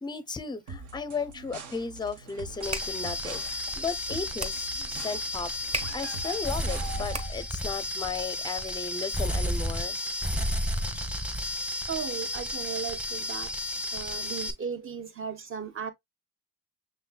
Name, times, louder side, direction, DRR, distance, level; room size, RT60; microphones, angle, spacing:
voice 1, 0.0-10.0, left 4 dB, 15° left, 0.5 m, -35 dB
sound 1, 0.7-7.4, right 3 dB, 70° right, 1.4 m, -43 dB
sound 2, 2.4-7.7, right 2 dB, 20° right, 1.2 m, -40 dB
sound 3, 2.6-14.5, left 1 dB, 5° right, 0.9 m, -32 dB
voice 2, 11.9-13.6 13.9-15.9, right 7 dB, 40° right, 1.0 m, -36 dB
6.7 x 3.1 x 2.2 m
cardioid pair, 110°, 32 cm